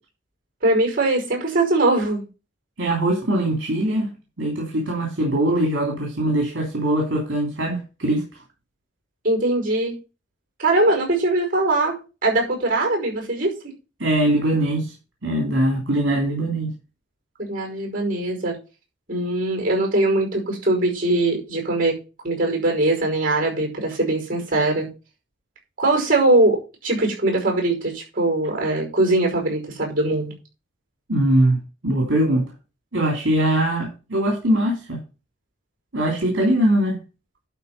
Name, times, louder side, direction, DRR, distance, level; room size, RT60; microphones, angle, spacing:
voice 1, 0.6-2.3 9.2-9.9 10.6-13.5 17.4-18.6 19.1-22.0 22.2-24.9 25.8-30.3, right 2 dB, 45° right, 5.4 m, -21 dB
voice 2, 2.8-4.1 4.4-8.2 14.0-14.9 15.2-16.7 31.1-31.6 31.8-32.5 32.9-35.0 35.9-37.0, right 1 dB, 70° right, 3.2 m, -21 dB
11.5 x 4.4 x 5.5 m
head